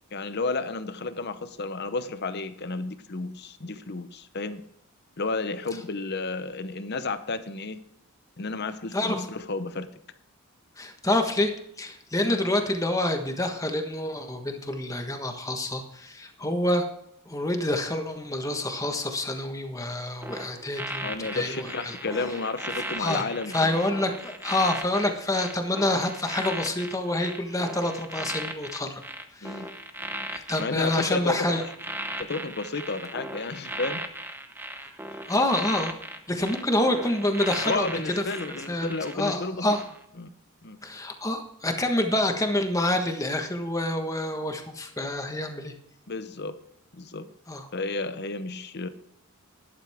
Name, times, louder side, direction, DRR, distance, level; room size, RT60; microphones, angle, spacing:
voice 1, 0.1-4.6 5.2-7.8 8.4-9.9 12.2-12.4 16.4-16.6 21.0-23.8 29.4-29.7 30.6-31.6 32.2-34.0 37.6-39.8 40.2-40.3 40.6-40.8 46.1-46.5 46.9-47.2 47.7-48.9, left 3 dB, 50° left, 11 dB, 0.8 m, -32 dB
voice 2, 8.9-9.3 10.8-11.5 11.8-16.9 17.3-21.9 23.0-23.2 23.5-29.0 29.3-29.6 30.3-31.6 34.8-34.9 35.3-35.9 36.3-37.9 38.2-38.3 38.7-39.8 40.8-45.7 47.5-47.6, left 1 dB, 15° left, 5 dB, 1.4 m, -27 dB
sound 1, 20.2-39.4 39.7-40.0, right 1 dB, 10° right, 0.8 m, -37 dB
12.0 x 11.5 x 3.6 m, 0.75 s
head